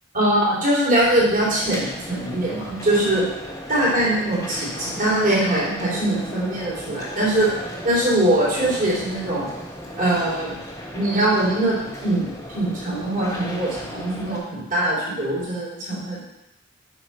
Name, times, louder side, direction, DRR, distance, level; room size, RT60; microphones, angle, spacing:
voice 1, 0.1-3.2 3.7-7.5 7.8-9.5 10.0-10.5 10.9-16.2, right 1 dB, 40° right, -7 dB, 3.5 m, -22 dB
sound 1, 1.0-14.4, equal, 15° left, 1.5 m, -36 dB
7.9 x 4.9 x 5.6 m, 0.92 s
head